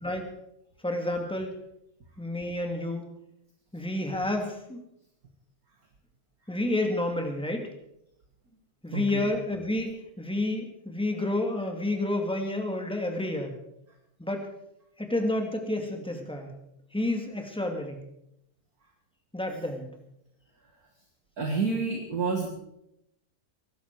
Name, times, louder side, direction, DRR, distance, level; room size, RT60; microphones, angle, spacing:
voice 1, 0.8-1.5 2.2-3.0 3.7-4.8 6.5-7.7 8.8-13.6 14.2-14.5 15.0-16.5 16.9-18.0 19.3-19.9, left 1 dB, ahead, 3 dB, 2.1 m, -30 dB
voice 2, 8.9-9.3 21.4-22.5, right 4 dB, 45° right, 2 dB, 2.2 m, -29 dB
22.5 x 12.0 x 4.8 m, 0.81 s
omnidirectional pair, 2.4 m